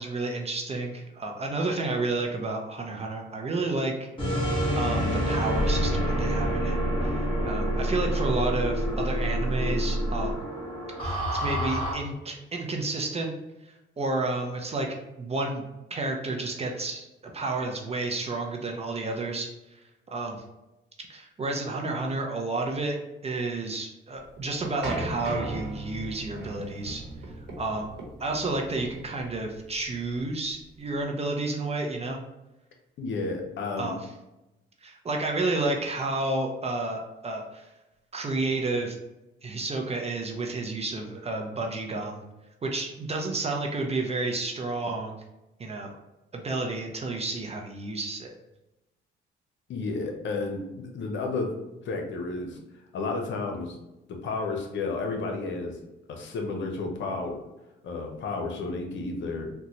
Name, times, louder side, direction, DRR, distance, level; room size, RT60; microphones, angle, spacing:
voice 1, 0.0-3.9 4.7-10.4 11.0-13.3 14.0-14.9 15.2-15.7 15.9-17.1 17.3-19.5 20.1-20.4 21.1-23.0 23.2-27.0 27.6-27.9 28.2-32.2 33.8-34.0 34.8-37.6 38.1-39.0 39.4-42.2 42.6-45.2 45.6-46.0 46.3-48.3, right 2 dB, 30° right, 1 dB, 0.5 m, -31 dB
sound 1, 4.2-11.9, equal, 25° left, 1.5 m, -27 dB
sound 2, 24.2-31.0, right 2 dB, 65° right, 1.0 m, -38 dB
voice 2, 33.0-33.9 49.7-53.8 54.1-55.8 56.1-57.4 57.8-59.5, left 3 dB, 70° left, 2 dB, 0.8 m, -32 dB
3.9 x 2.2 x 2.9 m, 0.96 s
cardioid pair, 90°, 20 cm